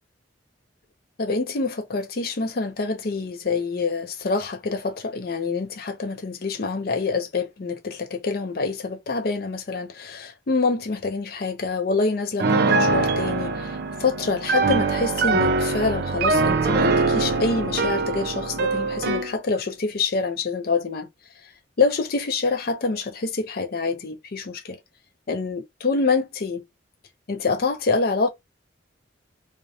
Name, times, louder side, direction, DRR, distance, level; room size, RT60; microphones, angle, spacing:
voice 1, 1.2-21.1 21.4-21.5 21.8-24.8 25.3-26.7 27.3-28.3, left 4 dB, 50° left, 0.5 m, -26 dB
Piano, 12.4-19.3, right 3 dB, 50° right, 0.4 m, -23 dB
2.7 x 2.1 x 2.7 m
head